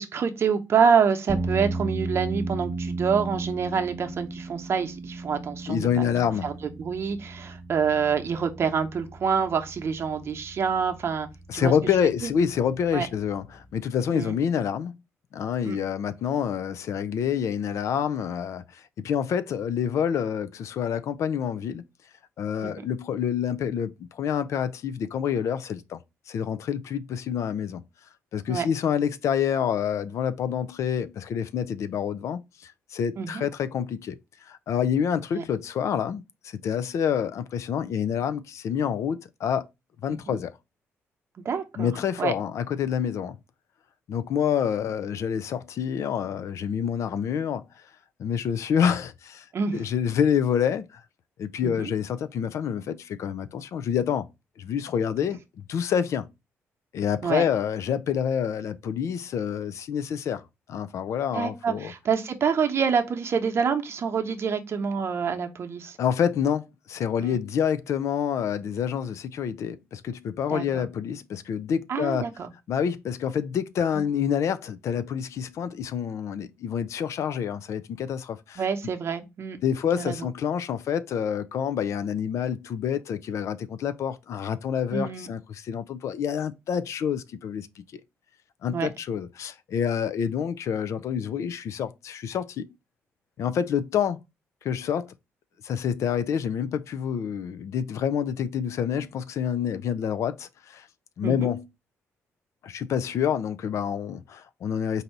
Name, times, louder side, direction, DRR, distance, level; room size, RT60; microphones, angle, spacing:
voice 1, 0.0-6.1 6.4-11.3 11.5-11.7 12.9-13.1 14.1-14.3 15.6-15.8 22.6-22.7 28.5-28.7 33.2-33.5 35.3-35.4 40.3-40.4 41.4-41.9 42.2-42.3 49.5-49.8 51.6-51.9 57.2-57.5 61.3-66.0 67.2-67.4 70.5-70.8 71.9-72.5 73.9-74.0 78.6-79.6 80.0-80.3 84.9-85.3 88.7-88.9 101.2-101.5, right 6 dB, 55° right, 0.8 m, -26 dB
sound 1, 1.3-13.8, right 2 dB, 20° right, 0.5 m, -35 dB
voice 2, 5.7-6.5 11.5-14.9 15.3-21.8 22.4-26.0 26.3-27.8 28.3-34.2 34.5-39.6 40.0-40.5 41.8-43.4 44.1-47.6 48.2-49.4 49.7-51.0 51.4-54.3 54.6-56.3 56.9-60.4 60.7-61.9 66.0-72.3 72.7-78.6 79.6-87.7 88.6-92.7 93.4-94.2 94.6-95.1 95.6-100.9 101.2-101.7 102.6-105.0, left 8 dB, 70° left, 0.5 m, -27 dB
4.0 x 2.7 x 4.5 m
cardioid pair, 100°, 5 cm